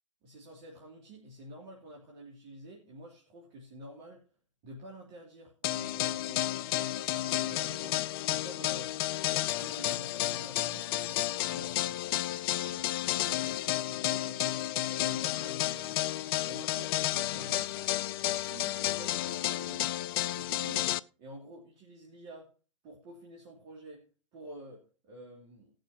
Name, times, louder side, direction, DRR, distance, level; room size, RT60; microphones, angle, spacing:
voice 1, 0.2-4.2 4.6-12.0 12.5-17.7 18.3-22.5 22.8-24.0 24.3-25.7, right 1 dB, 40° right, -1 dB, 2.9 m, -49 dB
sound 1, 5.6-21.0, left 14 dB, 50° left, 0.5 m, -32 dB
19.0 x 6.5 x 2.9 m, 0.36 s
figure-of-eight pair, 105°, 16 cm